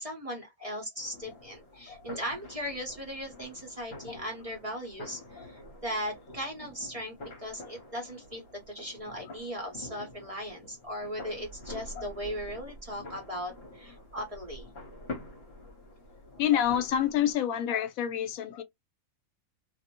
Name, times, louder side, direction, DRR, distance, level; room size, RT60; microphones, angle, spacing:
voice 1, 0.0-8.4 8.7-14.7, equal, 30° right, 0.8 m, -38 dB
sound 1, 1.0-17.3, left 2 dB, 55° left, 1.0 m, -47 dB
voice 2, 1.7-2.1 4.1-4.2 5.4-5.5 7.6-7.7 11.9-12.1 16.4-18.6, left 10 dB, 80° left, 1.0 m, -28 dB
2.5 x 2.1 x 2.9 m
omnidirectional pair, 1.5 m